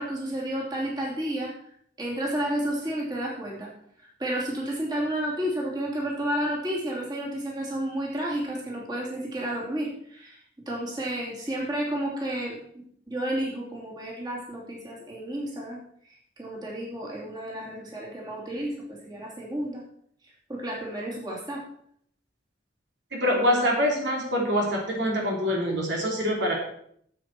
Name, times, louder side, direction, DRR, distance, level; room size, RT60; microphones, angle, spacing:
voice 1, 0.0-1.5 2.0-3.7 4.2-10.4 10.7-12.6 13.1-15.8 16.4-19.8 20.5-21.6, right 1 dB, 20° right, -4 dB, 2.9 m, -31 dB
voice 2, 23.1-26.5, equal, 65° right, -1 dB, 3.1 m, -25 dB
12.0 x 7.8 x 4.6 m, 0.67 s
head